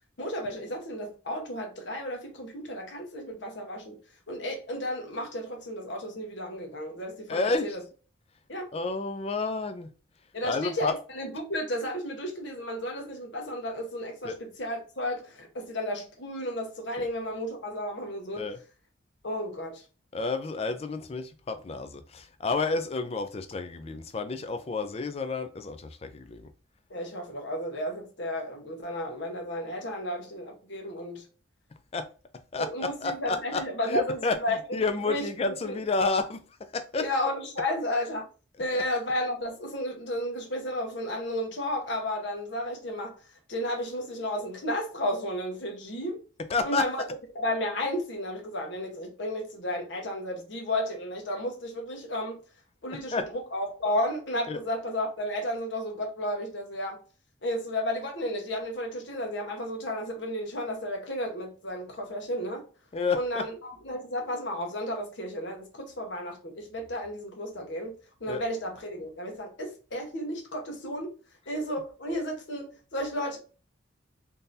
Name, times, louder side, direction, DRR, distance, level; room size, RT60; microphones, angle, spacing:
voice 1, 0.2-4.0 4.3-7.8 8.5-8.7 10.3-18.4 19.2-19.8 26.9-31.2 32.6-34.8 35.0-35.8 37.0-38.3 38.6-43.1 43.5-46.2 46.6-47.0 47.3-52.4 52.8-57.0 57.4-62.6 63.1-67.9 68.2-71.1 71.5-73.4, left 1 dB, 65° left, 1.0 m, -33 dB
voice 2, 7.3-7.8 8.7-9.9 10.4-11.0 14.2-14.4 17.0-17.1 18.4-18.6 20.1-26.5 31.9-32.1 32.5-36.4 36.7-37.0 38.7-38.8 46.5-46.9 53.1-53.2 54.5-54.6 62.9-63.5 68.3-68.4, left 3 dB, 30° left, 0.3 m, -30 dB
3.7 x 2.7 x 2.6 m
head